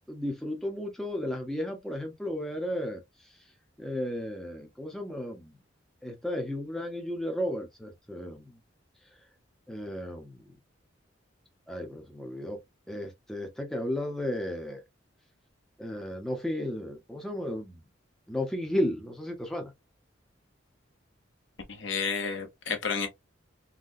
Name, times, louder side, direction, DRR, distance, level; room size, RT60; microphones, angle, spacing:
voice 1, 0.1-3.0 3.8-5.5 6.0-8.5 9.7-10.5 11.7-12.6 12.9-14.8 15.8-17.8 18.3-19.7, left 1 dB, 5° left, 0.7 m, -34 dB
voice 2, 21.8-23.1, left 5 dB, 75° left, 1.0 m, -31 dB
3.9 x 2.2 x 2.5 m
head